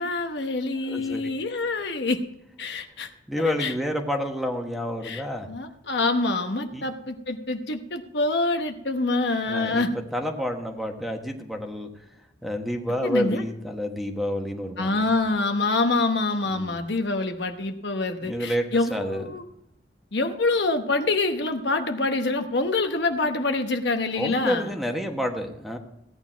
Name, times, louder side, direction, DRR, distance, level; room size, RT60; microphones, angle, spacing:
voice 1, 0.0-2.2 2.6-3.1 3.4-3.7 5.0-9.9 13.0-13.4 14.8-19.4 20.1-24.8, left 3 dB, 70° left, 6 dB, 1.0 m, -26 dB
voice 2, 0.9-1.2 3.3-5.5 6.7-6.8 9.5-9.8 10.1-11.9 12.4-15.1 16.5-16.8 18.2-18.6 18.9-19.3 24.1-25.8, equal, ahead, 3 dB, 1.3 m, -29 dB
16.0 x 9.4 x 4.5 m, 0.80 s
head